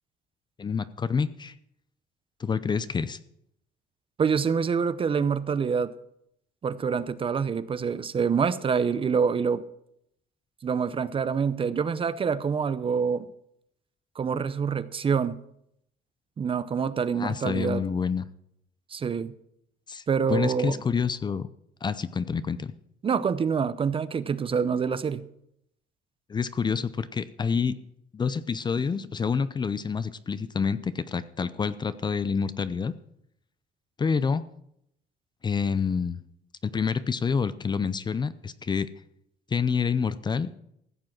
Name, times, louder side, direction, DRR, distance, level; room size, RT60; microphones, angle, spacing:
voice 1, 0.6-1.5 2.4-3.2 17.1-18.3 19.9-20.0 20.3-21.5 21.8-22.7 26.3-27.8 28.1-32.9 34.0-34.4 35.4-36.2 36.6-38.9 39.5-40.5, left 6 dB, 25° left, 15 dB, 0.6 m, -27 dB
voice 2, 4.2-5.9 6.6-9.6 10.6-13.3 14.2-15.4 16.4-17.8 18.9-19.3 20.1-20.8 23.0-25.2, right 6 dB, 30° right, 15 dB, 0.6 m, -26 dB
15.5 x 7.5 x 6.0 m, 0.75 s
cardioid pair, 110°, 17 cm